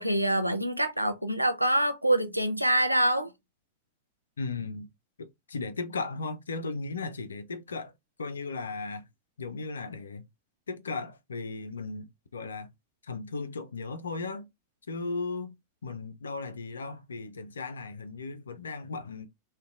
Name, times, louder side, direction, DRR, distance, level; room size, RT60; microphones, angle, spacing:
voice 1, 0.0-3.3, right 1 dB, 90° right, 0.4 m, -25 dB
voice 2, 4.4-4.9 5.2-7.9 8.2-9.1 9.4-10.3 10.7-12.7 13.1-14.5 14.9-15.5 15.8-19.3, left 3 dB, 70° left, 0.3 m, -36 dB
2.5 x 2.1 x 2.3 m
figure-of-eight pair, 90°, 0 cm